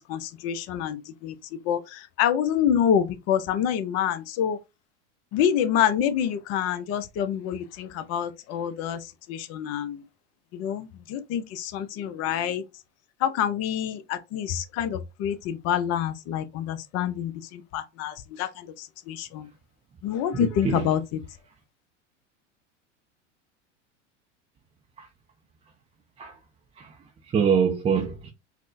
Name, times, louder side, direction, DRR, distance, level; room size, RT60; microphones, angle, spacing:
voice 1, 0.1-4.6 5.3-9.0 9.3-10.0 10.5-12.6 13.2-19.5 20.0-21.0, left 9 dB, 45° left, 0.6 m, -27 dB
voice 2, 20.3-21.0 25.0-25.1 26.2-26.4 26.7-28.3, right 6 dB, 15° right, 0.4 m, -26 dB
4.2 x 2.0 x 2.5 m
hypercardioid pair, 90°, 37 cm